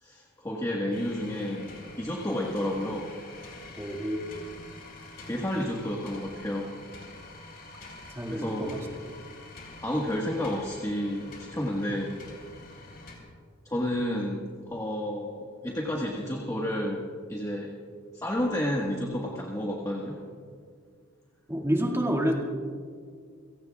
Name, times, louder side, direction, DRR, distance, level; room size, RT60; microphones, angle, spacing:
voice 1, 0.0-1.7 2.0-3.1 5.2-6.7 8.3-8.7 9.8-12.1 13.6-17.7 18.1-20.2, left 1 dB, 15° left, -1 dB, 1.4 m, -31 dB
sound 1, 0.9-13.2, left 2 dB, 45° left, 4.0 m, -47 dB
voice 2, 3.8-4.2 8.1-8.9 21.5-22.3, equal, 15° right, -1 dB, 2.0 m, -28 dB
30.0 x 17.5 x 2.4 m, 2.1 s
head